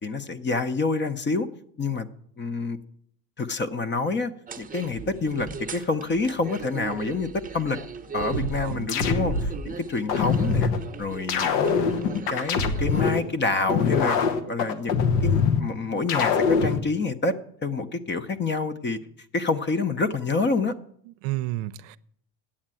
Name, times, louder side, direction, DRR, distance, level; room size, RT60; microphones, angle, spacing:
voice 1, 0.0-1.5 1.8-2.1 2.4-2.8 3.4-4.3 4.6-7.8 8.1-10.7 11.0-14.2 14.5-19.0 19.3-20.7, left 3 dB, 25° left, 12 dB, 0.6 m, -27 dB
sound 1, 4.5-13.4, right 5 dB, 20° right, 0.8 m, -39 dB
sound 2, 8.3-9.6 10.1-10.8 11.3-13.2 13.7-15.6 16.1-16.8, left 5 dB, 90° left, 1.3 m, -23 dB
voice 2, 8.3-8.9 21.2-22.0, right 17 dB, 70° right, 15 dB, 0.6 m, -31 dB
8.7 x 7.3 x 8.9 m, 0.67 s
cardioid pair, 120°, 47 cm